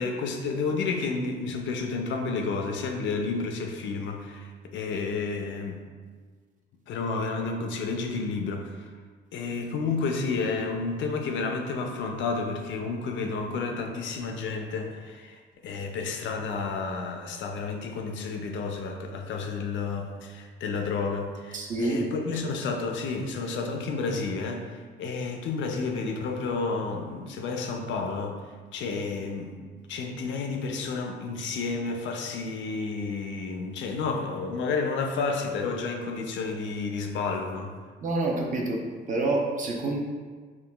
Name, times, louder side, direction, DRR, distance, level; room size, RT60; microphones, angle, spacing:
voice 1, 0.0-5.9 6.9-8.9 9.3-28.4 28.7-29.6 29.9-37.7, left 4 dB, 70° left, 3 dB, 0.4 m, -31 dB
voice 2, 21.5-22.0 38.0-38.8 39.1-40.0, right 2 dB, 40° right, -1 dB, 0.5 m, -27 dB
3.6 x 2.2 x 2.2 m, 1.5 s
cardioid pair, 90°, 20 cm